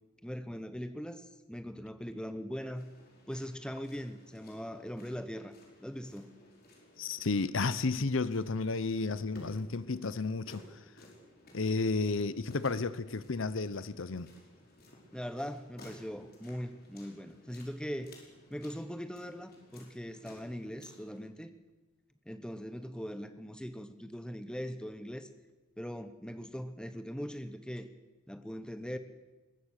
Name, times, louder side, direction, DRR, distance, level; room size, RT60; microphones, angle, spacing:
voice 1, 0.2-2.9 3.3-5.5 5.8-6.3 15.1-18.1 18.5-21.5 22.2-25.3 25.8-27.9 28.3-29.0, equal, 5° left, 1.1 m, -40 dB
sound 1, 2.8-21.2, left 1 dB, 45° left, 5.0 m, -57 dB
voice 2, 7.0-10.8 11.5-14.3, left 3 dB, 65° left, 0.7 m, -32 dB
22.0 x 20.0 x 6.6 m
head